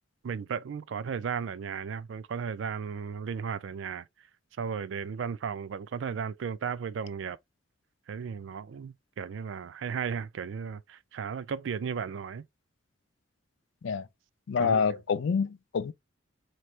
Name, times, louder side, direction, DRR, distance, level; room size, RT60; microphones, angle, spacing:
voice 1, 0.2-4.0 4.6-7.4 8.1-12.5 14.6-15.0, right 6 dB, 65° right, 0.4 m, -35 dB
voice 2, 14.5-15.9, left 5 dB, 65° left, 0.4 m, -27 dB
4.4 x 3.1 x 2.4 m
head